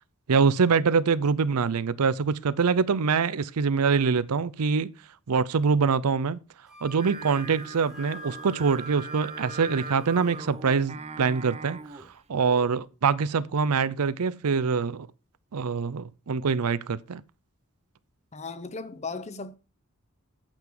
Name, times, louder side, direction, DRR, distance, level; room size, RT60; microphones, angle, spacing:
voice 1, 0.3-4.9 5.3-6.4 6.8-12.0 12.3-15.1 15.5-17.2, right 5 dB, 85° right, 0.6 m, -24 dB
Wind instrument woodwind instrument, 6.7-10.4, left 2 dB, ahead, 1.5 m, -48 dB
Singing, 7.0-12.2, right 4 dB, 30° right, 0.7 m, -40 dB
voice 2, 18.3-19.6, left 4 dB, 30° left, 0.7 m, -36 dB
9.0 x 7.6 x 3.8 m
head